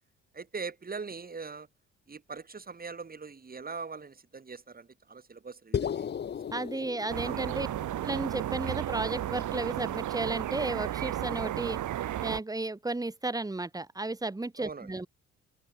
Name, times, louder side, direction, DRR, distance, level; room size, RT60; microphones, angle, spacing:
voice 1, 0.3-1.7 2.1-6.1 6.5-6.8 7.2-7.6 14.6-14.9, right 4 dB, 30° right, 3.4 m, -42 dB
sound 1, 5.7-10.1, left 8 dB, 35° left, 0.7 m, -37 dB
voice 2, 6.5-7.7 8.0-11.8 12.2-15.1, right 2 dB, 10° right, 1.6 m, -33 dB
sound 2, 7.1-12.4, right 12 dB, 75° right, 3.5 m, -33 dB
open air
cardioid pair, 90°, 30 cm